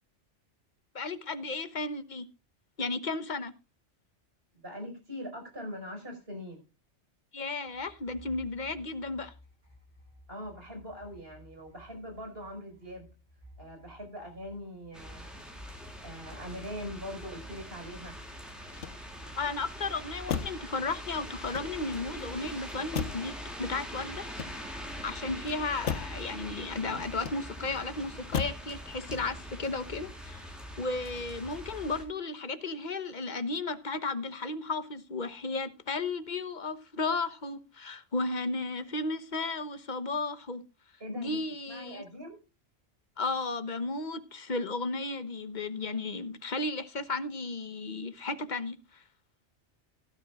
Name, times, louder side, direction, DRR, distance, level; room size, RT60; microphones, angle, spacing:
voice 1, 0.9-2.3 2.8-3.5 7.3-9.3 19.4-24.3 25.0-40.6 41.1-42.0 43.2-49.0, left 3 dB, 40° left, 1.2 m, -34 dB
voice 2, 4.5-6.6 10.3-13.1 13.6-15.4 16.0-18.2 26.8-27.0 41.0-42.4, equal, 55° right, 5.4 m, -42 dB
sound 1, 7.7-17.9 18.3-20.1 21.3-22.3, left 1 dB, 25° right, 7.7 m, -58 dB
sound 2, 14.9-32.0, equal, ahead, 3.9 m, -43 dB
Motor vehicle (road), 18.6-19.4 20.2-20.7 21.4-22.1 22.9-23.4 24.2-24.9 25.8-26.2 27.1-27.7 28.3-28.7 29.1-29.5, left 7 dB, 80° left, 1.4 m, -36 dB
17.5 x 12.0 x 2.4 m
omnidirectional pair, 1.2 m